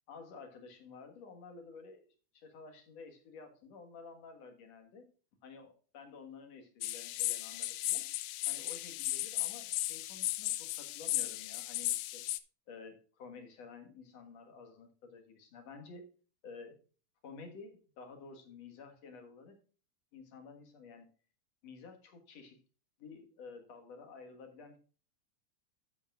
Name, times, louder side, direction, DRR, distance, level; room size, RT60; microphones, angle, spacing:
voice 1, 0.1-2.1 2.3-5.1 5.4-8.0 8.5-12.2 12.7-16.1 16.4-16.8 17.2-19.6 20.1-21.1 21.6-22.6 23.0-24.8, left 4 dB, 60° left, 5 dB, 2.7 m, -52 dB
sound 1, 6.8-12.4, left 17 dB, 90° left, 2.1 m, -36 dB
12.5 x 8.4 x 2.4 m, 0.37 s
omnidirectional pair, 3.4 m